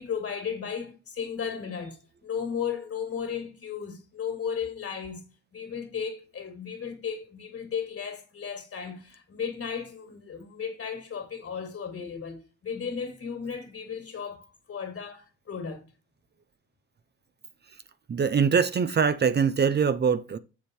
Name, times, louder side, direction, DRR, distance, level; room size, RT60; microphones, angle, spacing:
voice 1, 0.0-5.3 5.5-15.8, left 7 dB, 50° left, 2.8 m, -35 dB
voice 2, 18.1-20.4, right 6 dB, 35° right, 0.6 m, -23 dB
7.5 x 7.2 x 3.1 m
cardioid pair, 90°, 30 cm